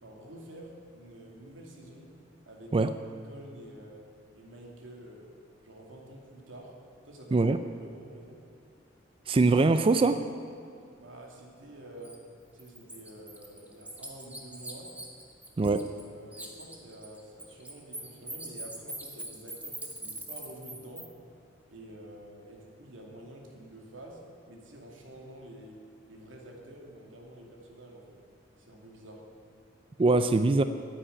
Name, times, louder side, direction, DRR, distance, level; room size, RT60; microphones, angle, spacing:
voice 1, 0.0-2.1 2.4-4.1 4.3-5.4 5.6-6.8 7.0-8.4 10.9-12.2 12.5-14.9 15.6-21.1 21.7-28.2 28.6-29.3, right 1 dB, 85° right, 0 dB, 2.6 m, -48 dB
voice 2, 9.3-10.2 15.6-15.8 30.0-30.6, right 3 dB, 30° right, 10 dB, 0.4 m, -22 dB
Bird, 12.0-12.2 12.6-16.1 16.3-21.1, right 2 dB, 10° right, 1.5 m, -42 dB
10.0 x 9.6 x 9.9 m, 2.5 s
head